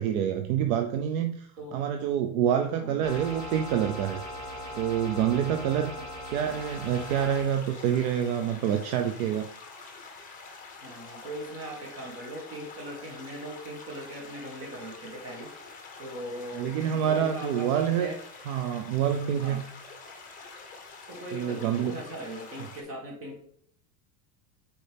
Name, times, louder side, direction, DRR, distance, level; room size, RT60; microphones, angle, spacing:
voice 1, 0.0-4.2 4.7-5.9 6.3-9.5 16.5-18.1 18.5-19.6 21.3-22.0, right 9 dB, 65° right, 6 dB, 0.7 m, -27 dB
sound 1, 3.0-7.4, left 1 dB, 15° right, 2.9 m, -39 dB
sound 2, 6.4-22.8, left 4 dB, 15° left, 1.3 m, -46 dB
voice 2, 10.8-15.5 16.0-18.2 19.4-19.6 21.1-23.4, right 1 dB, 30° right, -1 dB, 2.2 m, -40 dB
8.6 x 4.5 x 3.4 m, 0.65 s
supercardioid pair, 155°, 46 cm